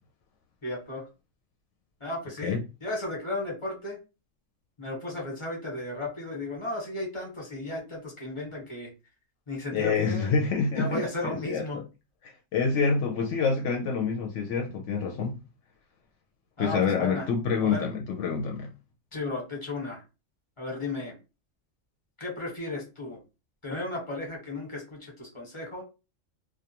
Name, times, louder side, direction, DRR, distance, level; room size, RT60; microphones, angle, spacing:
voice 1, 0.6-1.0 2.0-4.0 4.8-8.9 9.5-10.3 10.7-11.8 16.6-17.3 17.6-17.9 19.1-20.0 20.6-21.2 22.2-23.2 23.6-25.8, left 2 dB, 25° left, 1.0 m, -34 dB
voice 2, 9.7-11.8 12.2-15.4 16.6-18.7, left 5 dB, 75° left, 0.9 m, -27 dB
2.4 x 2.2 x 2.8 m
omnidirectional pair, 1.3 m